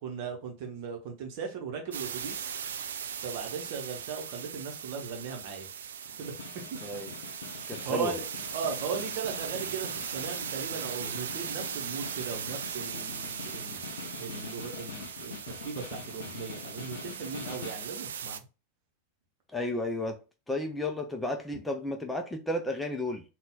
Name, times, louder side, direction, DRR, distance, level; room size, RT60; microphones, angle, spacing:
voice 1, 0.0-2.5 3.2-5.7 6.2-6.4 6.7-6.8 7.5-8.3 8.5-13.8 14.2-18.4, right 5 dB, 45° right, 1.0 m, -37 dB
sound 1, 1.9-18.4, right 8 dB, 65° right, 0.3 m, -39 dB
Snare drum, 6.1-17.9, left 5 dB, 60° left, 0.6 m, -44 dB
voice 2, 6.8-7.1 7.7-8.1 19.5-20.2 20.5-23.2, left 1 dB, 5° left, 0.6 m, -33 dB
3.8 x 2.4 x 3.9 m
figure-of-eight pair, 90°, 0 cm